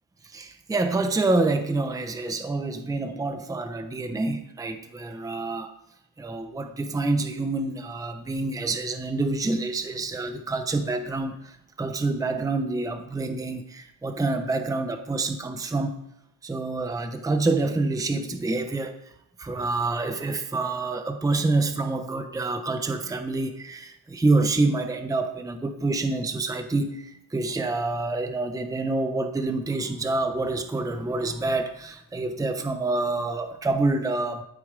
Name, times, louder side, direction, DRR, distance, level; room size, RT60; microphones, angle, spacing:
voice 1, 0.2-5.7 6.2-16.0 16.4-19.0 19.4-34.4, right 3 dB, 10° right, 7 dB, 0.7 m, -27 dB
12.0 x 8.3 x 5.1 m, 0.83 s
cardioid pair, 165°, 38 cm